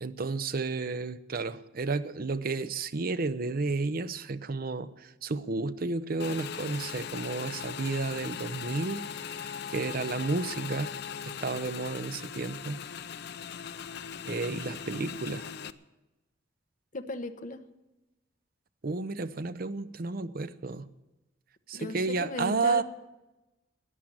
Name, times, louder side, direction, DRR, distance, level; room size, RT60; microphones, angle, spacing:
voice 1, 0.0-9.0 9.3-10.9 11.2-12.8 14.2-15.5 18.8-20.8 21.7-22.8, right 3 dB, 50° right, 13 dB, 0.7 m, -32 dB
Motorcycle / Engine, 6.2-15.7, left 7 dB, 60° left, 0.6 m, -39 dB
voice 2, 16.9-17.6 21.7-22.8, left 2 dB, 45° left, 7 dB, 1.0 m, -37 dB
14.0 x 10.0 x 8.8 m, 1.0 s
head